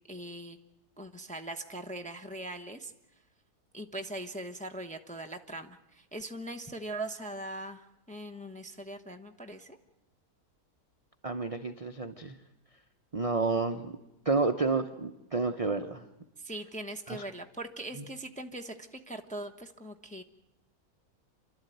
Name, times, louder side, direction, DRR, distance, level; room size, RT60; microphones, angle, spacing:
voice 1, 0.1-0.6 1.0-2.9 3.7-9.8 16.4-20.2, right 1 dB, 5° left, 5 dB, 0.7 m, -41 dB
voice 2, 11.2-12.4 13.1-13.9 14.3-16.0 17.1-17.2, right 4 dB, 35° right, 8 dB, 0.5 m, -30 dB
28.5 x 12.0 x 9.1 m, 0.91 s
omnidirectional pair, 1.7 m